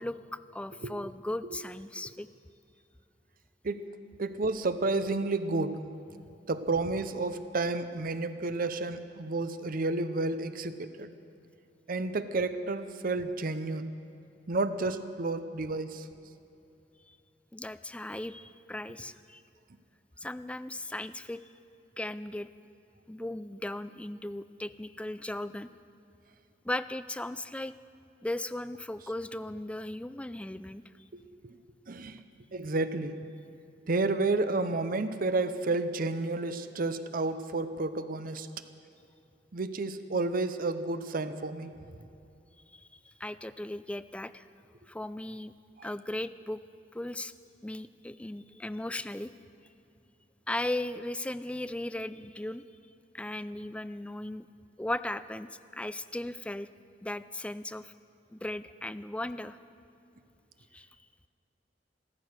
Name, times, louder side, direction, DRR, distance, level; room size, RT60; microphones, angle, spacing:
voice 1, 0.0-2.3 17.1-17.2 17.5-19.4 20.2-21.4 22.0-22.5 23.1-25.7 26.6-27.7 28.2-30.8 42.7-44.5 44.9-45.5 45.8-46.6 46.9-47.3 47.6-49.3 50.5-52.6 53.1-54.5 54.8-56.7 57.0-57.9 58.3-59.6 60.7-60.9, left 1 dB, 5° left, 13 dB, 0.3 m, -37 dB
voice 2, 4.2-5.9 6.5-11.1 11.9-13.9 14.5-16.0 31.1-31.5 31.9-32.2 32.5-33.2 33.9-38.5 39.5-41.7, right 3 dB, 50° right, 11 dB, 0.7 m, -31 dB
14.5 x 14.0 x 6.6 m, 2.6 s
head